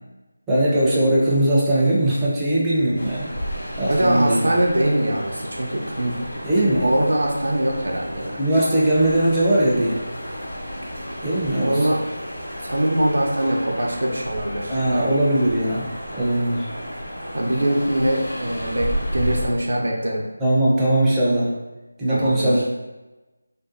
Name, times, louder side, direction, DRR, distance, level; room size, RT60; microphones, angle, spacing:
voice 1, 0.5-3.3 3.8-4.4 6.4-6.9 8.4-10.0 11.2-11.8 14.7-15.9 16.1-16.7 20.4-21.5 22.0-22.6, right 1 dB, 10° right, -9 dB, 0.5 m, -20 dB
sound 1, 2.9-19.5, equal, 65° left, 1.1 m, -32 dB
voice 2, 3.9-6.5 6.7-8.4 11.6-12.0 12.6-15.1 17.3-20.2 22.1-22.6, right 1 dB, 70° right, -1 dB, 0.5 m, -23 dB
2.6 x 2.2 x 2.5 m, 1.1 s
figure-of-eight pair, 165°, 0 cm